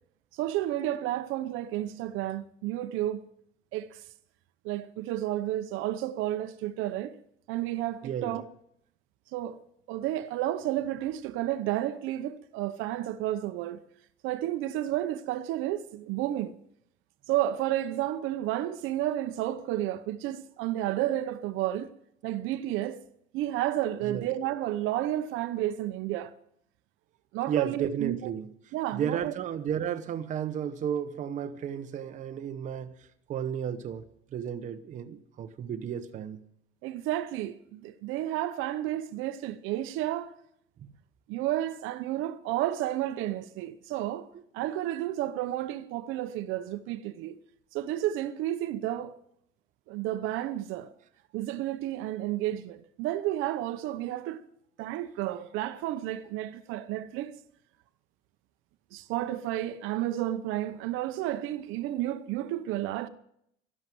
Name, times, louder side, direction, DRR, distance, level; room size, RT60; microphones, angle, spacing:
voice 1, 0.3-3.2 3.7-4.0 4.6-7.2 7.5-8.5 9.3-9.6 9.9-13.8 14.2-16.5 17.3-21.9 22.2-23.0 23.3-26.3 27.3-28.3 28.7-29.3 36.8-40.3 41.3-44.3 44.5-47.3 47.7-49.1 49.9-50.9 51.3-54.4 54.8-57.3 58.9-63.1, right 13 dB, 75° right, 0.9 m, -31 dB
voice 2, 8.0-8.4 24.0-24.3 27.5-28.5 28.9-32.9 33.3-34.0 34.3-36.4 40.8-40.9, right 8 dB, 35° right, 0.9 m, -33 dB
12.5 x 11.5 x 7.7 m
cardioid pair, 165°, 21 cm